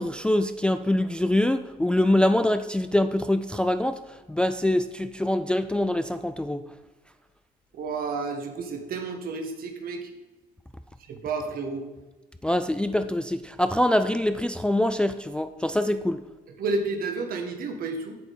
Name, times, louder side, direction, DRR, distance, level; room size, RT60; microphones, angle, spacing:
voice 1, 0.0-6.7 12.4-16.2, left 1 dB, 5° left, 10 dB, 0.3 m, -24 dB
voice 2, 7.7-10.1 11.1-11.9 16.6-18.2, right 3 dB, 60° right, 5 dB, 1.5 m, -31 dB
8.2 x 7.1 x 5.3 m, 1.1 s
cardioid pair, 110°, 17 cm